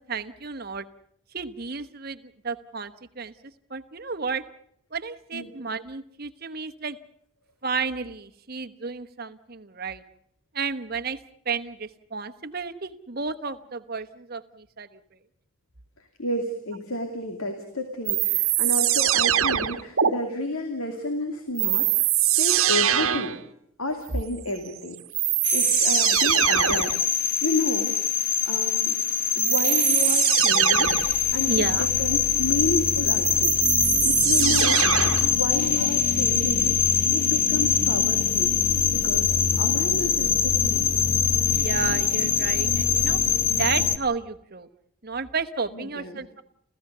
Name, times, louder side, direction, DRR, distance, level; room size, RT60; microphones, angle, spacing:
voice 1, 0.1-0.8 1.3-2.2 2.4-3.3 3.7-4.4 4.9-7.0 7.6-10.0 10.5-11.2 11.4-15.0 31.5-31.9 34.6-34.8 35.8-35.9 41.5-43.2 43.6-44.7 45.0-46.4, right 4 dB, 45° right, 9 dB, 1.1 m, -32 dB
voice 2, 16.2-23.3 23.8-25.0 25.5-26.9 27.4-27.9 28.5-29.0 29.3-30.9 31.3-33.5 34.0-34.8 35.2-36.7 37.1-38.5 38.9-39.3 39.6-40.9 45.7-46.2, left 2 dB, 85° left, 5 dB, 2.5 m, -31 dB
sound 1, 18.1-20.1 21.6-23.4 24.7-24.8 25.1-27.0 29.4-31.2 32.9-35.3, right 11 dB, 80° right, 1.2 m, -22 dB
sound 2, 25.4-44.0, left 7 dB, 40° left, 1.2 m, -23 dB
29.5 x 15.0 x 6.7 m, 0.69 s
head